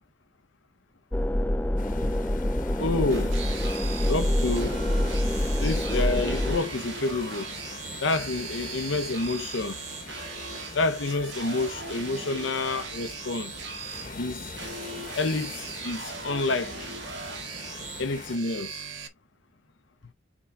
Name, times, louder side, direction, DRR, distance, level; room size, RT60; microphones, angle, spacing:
sound 1, 1.1-6.6, left 1 dB, 10° left, 0.5 m, -26 dB
sound 2, 1.8-18.4, left 4 dB, 45° left, 1.1 m, -43 dB
voice 1, 2.8-3.4 4.1-4.8 5.6-7.5 8.0-9.8 10.7-13.5 14.2-14.5 15.1-16.9 18.0-18.8, left 3 dB, 85° left, 0.8 m, -28 dB
sound 3, 3.1-19.1, right 4 dB, 80° right, 1.7 m, -39 dB
8.4 x 3.7 x 3.4 m
head